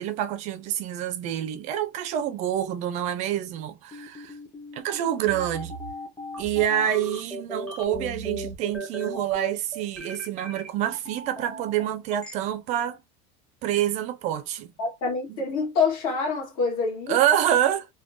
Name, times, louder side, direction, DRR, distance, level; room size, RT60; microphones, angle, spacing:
voice 1, 0.0-4.3 4.7-5.7 6.4-13.0 13.6-14.7 15.3-15.4 17.1-17.9, right 11 dB, 35° right, 0.4 m, -27 dB
sound 1, 3.9-12.3, right 1 dB, 5° left, 0.6 m, -37 dB
voice 2, 14.8-17.2, left 4 dB, 65° left, 1.6 m, -26 dB
3.5 x 2.2 x 2.4 m
cardioid pair, 170°, 20 cm